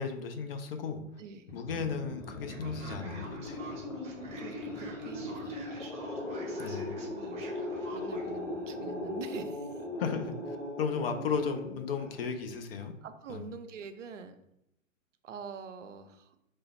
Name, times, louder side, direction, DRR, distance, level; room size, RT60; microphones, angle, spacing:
voice 1, 0.0-1.0 1.5-3.6 6.6-7.1 10.0-12.9 13.3-13.4, left 6 dB, 45° left, 6 dB, 0.5 m, -35 dB
sound 1, 1.5-12.6, left 1 dB, 70° left, 1.4 m, -39 dB
Male speech man speaking, 2.5-8.3, right 3 dB, 15° right, 0.8 m, -49 dB
voice 2, 4.1-5.6 6.7-7.5 7.9-9.8 13.0-14.4 15.2-16.3, right 6 dB, 65° right, 9 dB, 0.5 m, -45 dB
3.2 x 2.0 x 4.1 m, 0.80 s
figure-of-eight pair, 115°, 40 cm